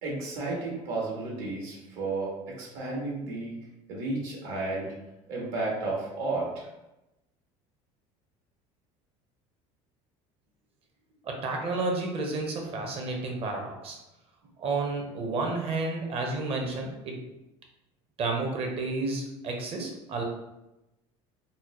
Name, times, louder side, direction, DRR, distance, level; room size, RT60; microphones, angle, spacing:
voice 1, 0.0-3.5 3.9-4.9 5.3-6.7, right 3 dB, 75° right, -3 dB, 1.4 m, -32 dB
voice 2, 11.2-14.0 14.6-17.2 18.2-20.2, right 3 dB, 45° right, 1 dB, 0.8 m, -31 dB
4.0 x 2.0 x 3.0 m, 0.94 s
cardioid pair, 130°, 14 cm